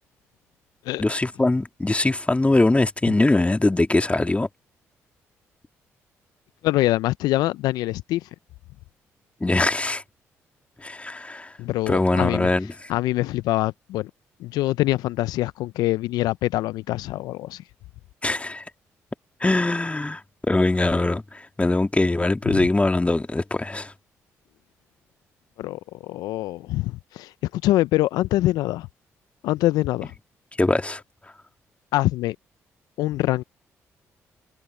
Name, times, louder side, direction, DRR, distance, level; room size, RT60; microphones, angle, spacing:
voice 1, 1.0-4.5 9.4-10.0 10.8-11.5 11.9-12.7 18.2-18.6 19.4-20.2 20.5-23.9 30.6-31.0, left 2 dB, 20° left, 1.9 m, -22 dB
voice 2, 6.6-8.3 11.6-12.5 12.9-14.1 14.4-17.6 22.5-22.6 25.6-28.9 29.4-30.1 31.9-32.4 33.0-33.4, left 16 dB, 75° left, 0.5 m, -24 dB
hypercardioid pair, 45°, 7 cm